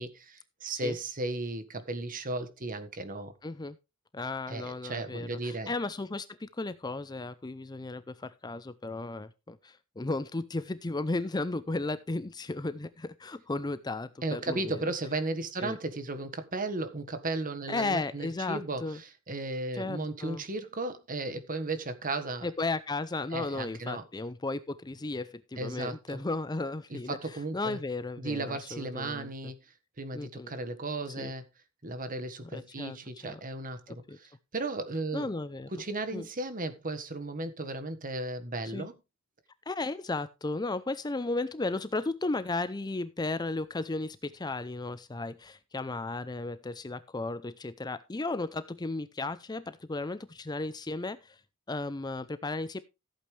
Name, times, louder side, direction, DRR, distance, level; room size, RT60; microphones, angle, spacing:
voice 1, 0.0-3.3 4.5-5.7 14.2-22.5 23.3-24.0 25.6-26.2 26.9-27.8 28.2-29.6 30.0-31.4 31.8-35.3 35.7-38.9, right 2 dB, 40° right, 1.5 m, -35 dB
voice 2, 3.4-3.8 4.1-14.9 15.6-15.8 17.7-19.0 19.7-20.4 22.4-27.2 27.5-29.5 30.1-30.5 31.2-31.3 32.5-33.0 33.2-33.4 34.1-34.2 35.1-35.7 36.1-36.3 38.7-38.9 39.7-51.4 51.7-52.8, left 2 dB, 20° left, 0.5 m, -35 dB
14.5 x 8.5 x 3.3 m
head